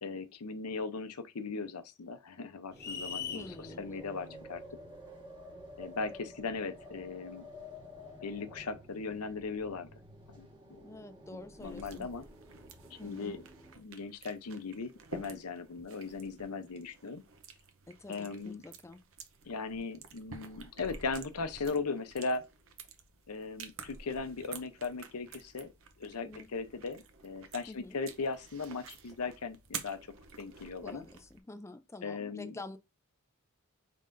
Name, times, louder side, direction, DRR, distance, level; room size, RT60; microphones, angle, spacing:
voice 1, 0.0-4.6 5.8-7.5 8.2-9.9 10.3-10.9 11.3-12.2 13.0-13.4 13.8-17.2 18.1-18.6 19.5-22.4 23.3-25.7 26.0-30.0 30.4-31.0 32.0-32.5, left 4 dB, 85° left, 0.7 m, -38 dB
sound 1, 2.7-13.7, left 1 dB, 20° right, 1.4 m, -51 dB
sound 2, 2.8-3.5, left 7 dB, 45° left, 1.0 m, -39 dB
voice 2, 3.3-3.8 10.8-12.1 13.0-13.4 17.9-19.0 26.2-26.5 27.7-28.0 30.8-32.8, left 2 dB, 10° left, 0.4 m, -47 dB
sound 3, 11.6-31.4, right 5 dB, 65° right, 0.8 m, -50 dB
5.6 x 3.7 x 2.6 m
head